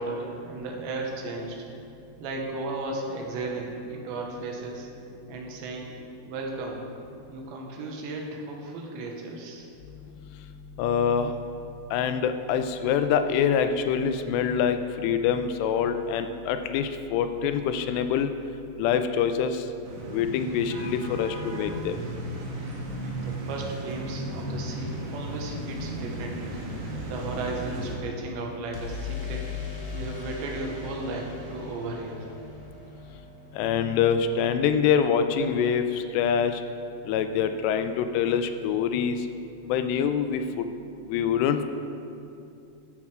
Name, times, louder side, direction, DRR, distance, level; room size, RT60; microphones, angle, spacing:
voice 1, 0.0-1.6 2.2-4.9 5.3-5.9 6.3-6.8 7.3-9.7 23.2-26.5 27.0-29.5 29.9-32.3, right 2 dB, 90° right, 0 dB, 3.4 m, -35 dB
voice 2, 10.8-11.3 11.9-18.3 18.8-19.6 20.1-22.0 33.6-36.6 37.1-39.2 39.7-40.6 41.1-41.6, left 7 dB, 85° left, 9 dB, 2.6 m, -25 dB
sound 1, 19.8-28.0, right 1 dB, 75° right, 3.5 m, -35 dB
sound 2, 20.6-22.6 28.7-34.5, left 6 dB, 60° left, 3.0 m, -40 dB
11.5 x 7.4 x 4.9 m, 2.6 s
omnidirectional pair, 5.0 m